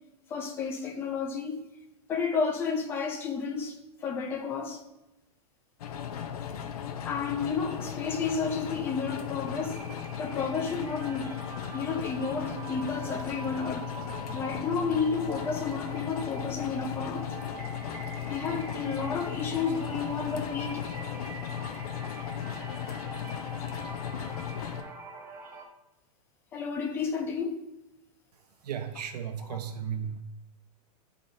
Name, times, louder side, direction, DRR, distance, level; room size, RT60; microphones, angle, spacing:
voice 1, 0.3-1.6 2.1-3.8 4.0-4.8 7.0-9.8 10.2-11.4 11.7-13.9 14.3-17.3 18.3-20.8 26.5-27.6 29.5-29.6, left 5 dB, 10° left, 0.4 m, -31 dB
sound 1, 5.8-24.8, left 9 dB, 70° left, 0.7 m, -37 dB
sound 2, 7.0-7.3 7.5-25.7, right 3 dB, 10° right, 0.8 m, -45 dB
voice 2, 28.6-30.2, right 8 dB, 80° right, 0.9 m, -35 dB
10.0 x 3.8 x 2.6 m
supercardioid pair, 165°, 20 cm